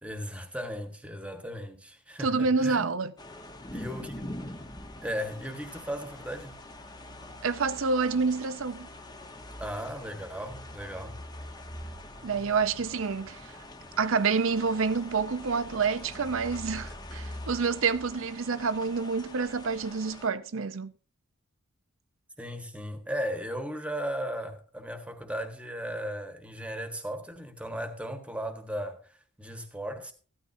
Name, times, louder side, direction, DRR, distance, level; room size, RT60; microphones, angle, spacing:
voice 1, 0.0-2.9 3.7-4.2 5.0-6.6 9.6-11.2 22.4-30.1, equal, 5° right, 1.5 m, -36 dB
voice 2, 2.2-3.1 7.4-8.9 12.2-13.5 14.0-20.9, right 5 dB, 65° right, 0.6 m, -28 dB
sound 1, 3.2-20.3, left 1 dB, 20° left, 1.1 m, -44 dB
15.0 x 12.5 x 2.7 m
head